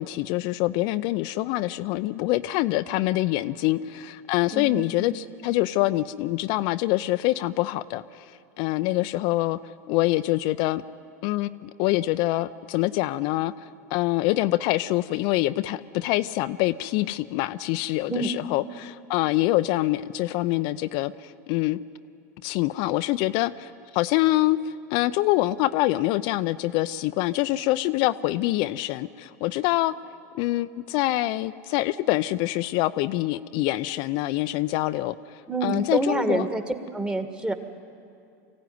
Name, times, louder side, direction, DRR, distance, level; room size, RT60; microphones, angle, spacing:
voice 1, 0.0-9.6 9.9-10.8 11.2-21.8 22.4-29.9 30.3-36.4, left 17 dB, 60° left, 11 dB, 0.5 m, -25 dB
voice 2, 4.5-5.2 18.1-18.3 35.5-36.6 36.9-37.5, right 2 dB, 10° right, 7 dB, 1.7 m, -27 dB
24.5 x 15.5 x 9.5 m, 2.5 s
hypercardioid pair, 100°, 9 cm